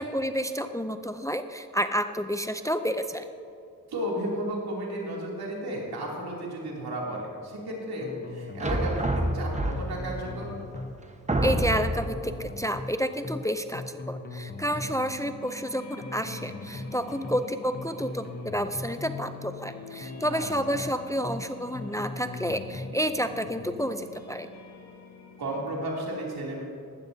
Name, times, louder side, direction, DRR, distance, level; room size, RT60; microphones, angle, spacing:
voice 1, 0.0-3.3 11.4-24.5, equal, 10° left, 9 dB, 0.5 m, -30 dB
voice 2, 3.9-10.5 17.1-17.2 20.3-20.4 20.7-20.8 25.4-26.6, right 1 dB, 85° right, -3 dB, 3.0 m, -33 dB
sound 1, 8.0-8.9 9.2-9.5 9.7-11.0 12.0-12.9 13.2-13.5 13.7-15.0 16.0-16.9 17.2-17.5 17.7-19.0 20.0-20.9 21.2-21.5 21.7-23.0, left 2 dB, 25° left, 0.9 m, -39 dB
sound 2, 8.6-10.1 10.8-10.9 11.3-12.1, right 1 dB, 20° right, 1.2 m, -27 dB
sound 3, 14.5-25.8, left 4 dB, 45° left, 1.8 m, -45 dB
15.5 x 12.5 x 2.8 m, 2.5 s
cardioid pair, 65°, 36 cm